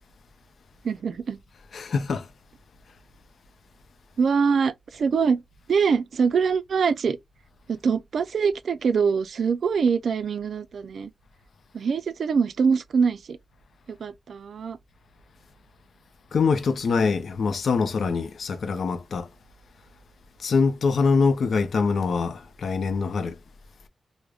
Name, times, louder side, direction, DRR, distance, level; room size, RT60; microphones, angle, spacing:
voice 1, 0.8-1.4 4.2-5.4 5.7-7.2 7.7-11.1 11.7-13.4 13.9-14.8, right 5 dB, 75° right, 0.3 m, -24 dB
voice 2, 1.7-2.3 16.3-19.3 20.4-23.3, left 4 dB, 70° left, 0.5 m, -24 dB
4.8 x 2.1 x 2.3 m
wide cardioid pair, 115°, 0 cm